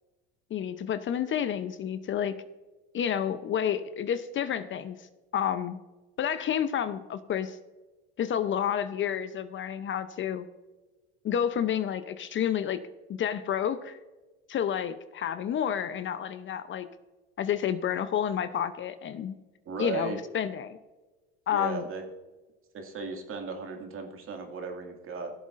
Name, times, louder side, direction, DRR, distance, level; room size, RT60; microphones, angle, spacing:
voice 1, 0.5-2.4 2.9-5.1 5.3-5.8 6.2-7.6 8.2-10.5 11.2-12.8 13.1-14.0 14.5-16.9 17.4-19.4 19.8-20.8 21.5-21.8, left 9 dB, 40° left, 11 dB, 0.7 m, -30 dB
voice 2, 19.7-20.2 21.5-22.0 22.7-25.3, right 4 dB, 45° right, 3 dB, 2.1 m, -36 dB
16.5 x 7.2 x 2.5 m, 1.2 s
supercardioid pair, 90°, 30 cm